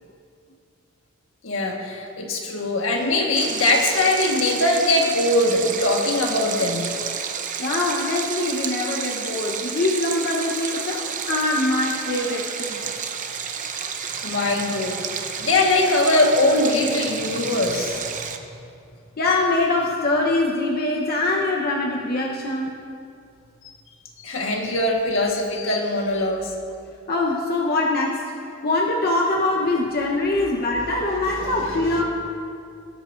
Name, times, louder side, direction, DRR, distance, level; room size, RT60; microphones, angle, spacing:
voice 1, 1.4-6.9 14.2-18.2 24.2-26.5 30.9-32.0, left 2 dB, 70° left, 0 dB, 1.5 m, -22 dB
Stream, 3.4-18.4, right 7 dB, 40° right, 0.7 m, -30 dB
voice 2, 7.6-12.8 19.2-22.7 27.1-28.3 28.6-32.0, left 2 dB, 50° left, -2 dB, 0.9 m, -23 dB
18.5 x 12.0 x 2.6 m, 2.5 s
head